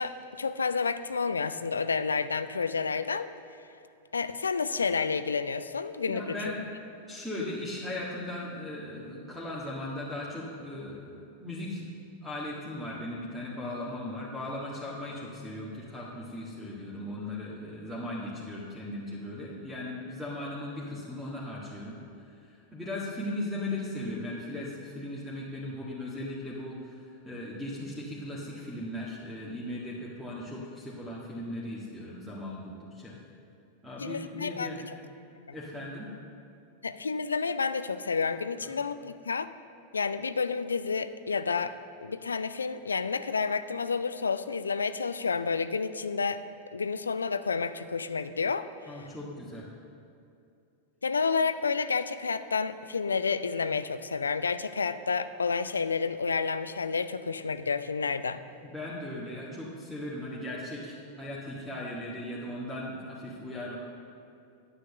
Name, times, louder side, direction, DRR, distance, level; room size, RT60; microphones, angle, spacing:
voice 1, 0.0-3.3 4.1-6.4 34.0-34.7 35.5-35.6 36.8-39.5 39.9-41.7 42.0-46.4 46.7-48.7 49.0-49.1 51.0-58.4, left 5 dB, 75° left, 13 dB, 0.4 m, -30 dB
voice 2, 6.1-11.9 12.2-33.2 33.8-34.8 35.5-36.1 38.6-38.8 48.9-49.7 58.6-63.8, left 1 dB, ahead, -7 dB, 1.7 m, -38 dB
10.0 x 8.4 x 6.7 m, 2.5 s
figure-of-eight pair, 90°, 0 cm